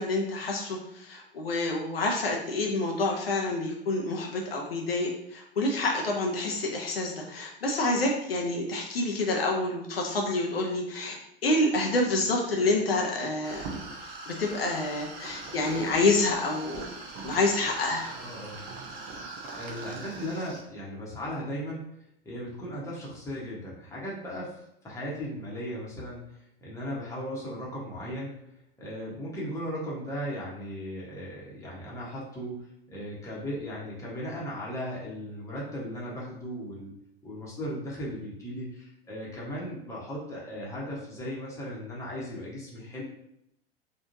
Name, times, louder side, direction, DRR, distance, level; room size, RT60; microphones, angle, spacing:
voice 1, 0.0-13.7 14.3-16.9 17.2-18.1, left 2 dB, 75° left, 0 dB, 0.6 m, -28 dB
sound 1, 13.4-20.6, right 3 dB, 40° right, 0.7 m, -41 dB
voice 2, 18.2-18.6 19.6-21.9 22.2-26.2 26.6-28.4 28.8-36.9 37.2-43.0, equal, 10° left, -6 dB, 1.1 m, -37 dB
3.6 x 2.5 x 2.7 m, 0.78 s
figure-of-eight pair, 85°, 30 cm